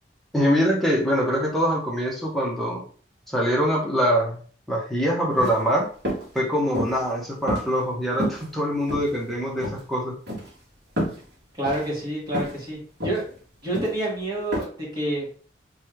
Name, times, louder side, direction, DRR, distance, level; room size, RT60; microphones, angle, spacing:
voice 1, 0.3-2.8 3.3-4.4 4.7-5.9 6.3-10.1, equal, ahead, -4 dB, 1.1 m, -23 dB
sound 1, 5.3-5.6 6.0-6.3 6.7-7.1 7.5-7.9 8.2-8.4 8.9-9.3 9.6-9.8 10.3-10.5 11.0-11.2 11.6-11.9 12.3-12.6 13.0-13.2 13.7-14.0 14.5-14.6, equal, 70° right, 1.8 m, -28 dB
voice 2, 11.5-13.2 13.6-15.3, right 1 dB, 25° right, -5 dB, 1.8 m, -28 dB
3.4 x 3.3 x 3.2 m, 0.43 s
head